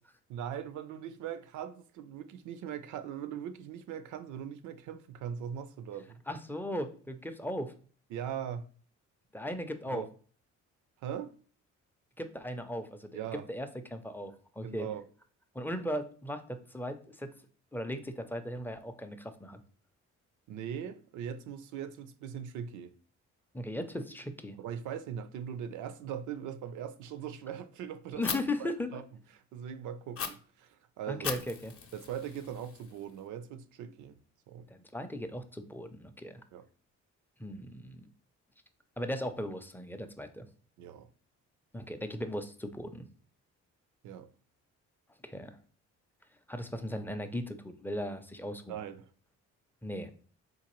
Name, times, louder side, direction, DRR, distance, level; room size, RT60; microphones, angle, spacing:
voice 1, 0.3-6.2 8.1-8.7 9.9-10.1 11.0-11.3 13.1-13.5 14.6-15.0 20.5-22.9 24.6-28.2 28.6-29.0 29.3-31.4 31.9-34.2 34.5-34.7 36.5-36.7 40.8-41.1 44.0-44.3 48.7-49.1, right 9 dB, 75° right, 0.5 m, -40 dB
voice 2, 6.3-7.7 9.3-10.0 12.2-13.2 13.5-14.9 15.5-17.3 17.7-19.6 23.5-24.6 28.2-28.9 31.1-31.7 34.7-36.4 37.4-38.1 39.0-40.5 41.7-43.1 45.2-45.6 46.5-48.8 49.8-50.1, left 1 dB, 5° left, 0.4 m, -37 dB
Fire, 28.2-28.4 30.2-30.3 31.2-33.2, left 6 dB, 50° left, 0.7 m, -38 dB
3.9 x 2.6 x 3.0 m
cardioid pair, 90°, 30 cm